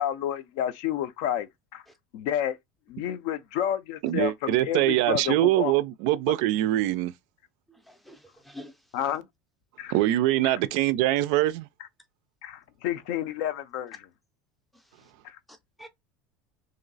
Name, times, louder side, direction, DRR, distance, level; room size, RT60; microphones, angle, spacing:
voice 1, 0.0-1.8 2.1-2.6 2.9-5.7 8.9-9.2 9.8-10.0 10.4-10.6 12.4-14.1 15.2-15.4, left 10 dB, 55° left, 0.5 m, -30 dB
voice 2, 4.0-7.1 9.9-11.7, right 15 dB, 55° right, 0.3 m, -23 dB
voice 3, 7.7-9.1 14.7-15.1 15.5-15.9, left 1 dB, ahead, 0.5 m, -49 dB
3.0 x 2.7 x 3.9 m
cardioid pair, 180°, 5 cm